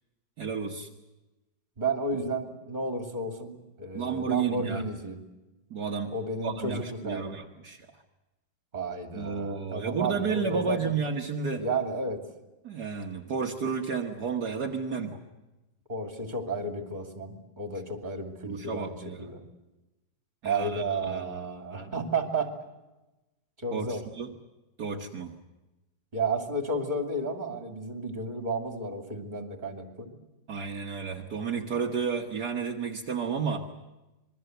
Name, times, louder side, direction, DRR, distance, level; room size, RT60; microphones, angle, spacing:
voice 1, 0.4-0.9 4.0-4.8 5.7-6.1 6.4-7.9 9.1-11.6 12.6-15.2 18.4-19.3 20.4-21.5 21.7-21.9 23.7-24.3 24.8-25.3 30.5-33.7, right 5 dB, 60° right, 1 dB, 1.8 m, -32 dB
voice 2, 1.8-5.2 6.1-7.3 8.7-10.9 11.6-12.2 15.9-19.4 20.4-22.5 23.6-24.0 26.1-30.1, right 2 dB, 25° right, 5 dB, 2.9 m, -32 dB
27.0 x 22.5 x 8.0 m, 1.0 s
omnidirectional pair, 1.9 m